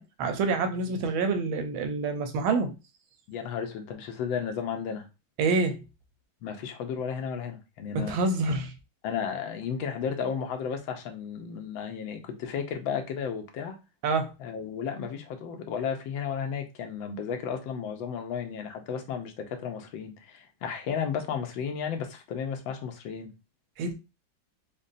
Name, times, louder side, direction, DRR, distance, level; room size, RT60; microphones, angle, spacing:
voice 1, 0.0-2.7 5.4-5.8 7.9-8.7 14.0-14.3 23.8-23.9, right 3 dB, 90° right, 1.5 m, -27 dB
voice 2, 3.3-5.1 6.4-8.1 9.0-13.8 14.4-23.3, left 7 dB, 80° left, 1.4 m, -33 dB
5.1 x 2.2 x 2.5 m
omnidirectional pair, 2.1 m